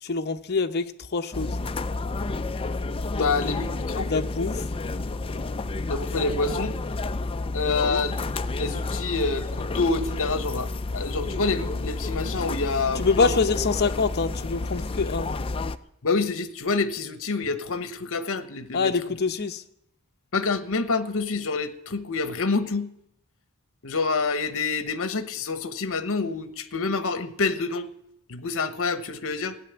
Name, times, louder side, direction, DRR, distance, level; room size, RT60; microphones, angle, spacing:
voice 1, 0.0-1.6 3.1-3.6 4.0-4.6 7.7-8.0 13.0-15.3 18.7-19.6, left 4 dB, 50° left, 7 dB, 0.8 m, -26 dB
sound 1, 1.3-15.8, left 3 dB, 25° left, 0.5 m, -30 dB
voice 2, 3.1-4.1 5.9-6.8 7.5-8.1 8.6-13.3 16.0-18.9 20.3-22.9 23.8-27.9 28.3-29.6, left 4 dB, 65° left, 12 dB, 1.1 m, -27 dB
15.0 x 9.5 x 8.1 m, 0.75 s
head